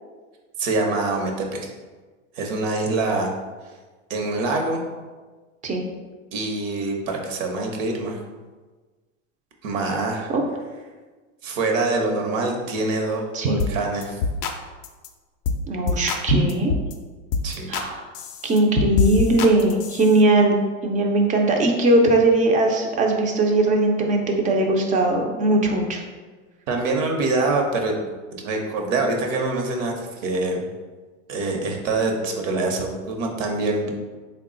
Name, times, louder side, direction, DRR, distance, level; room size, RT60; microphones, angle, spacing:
voice 1, 0.6-1.7 2.4-3.3 4.1-4.8 6.3-8.2 9.6-10.3 11.4-14.2 17.4-17.7 26.7-28.0 28.3-30.7 31.3-33.9, right 3 dB, 75° right, 2 dB, 0.9 m, -25 dB
sound 1, 13.6-13.8 14.0-14.6 14.8-15.1 15.4-15.6 15.9-16.9 17.3-17.9 18.1-20.2, left 4 dB, 45° left, 0.4 m, -25 dB
voice 2, 15.7-16.7 17.7-18.1 18.4-20.6 20.8-26.0, right 2 dB, 20° right, 2 dB, 0.4 m, -19 dB
3.6 x 2.2 x 3.7 m, 1.3 s
hypercardioid pair, 110°, 39 cm